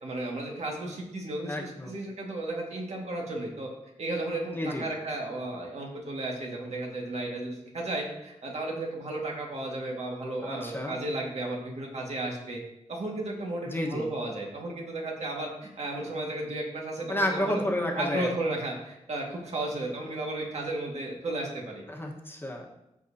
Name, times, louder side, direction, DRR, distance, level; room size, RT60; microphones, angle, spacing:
voice 1, 0.0-3.7 4.0-12.6 12.9-17.6 18.0-21.8, right 2 dB, 65° right, -1 dB, 1.9 m, -34 dB
voice 2, 1.5-1.9 4.5-4.9 10.4-11.0 13.7-14.1 17.1-18.3 21.9-22.7, left 1 dB, 20° left, -1 dB, 1.3 m, -31 dB
14.0 x 5.4 x 2.8 m, 0.89 s
wide cardioid pair, 100°, 12 cm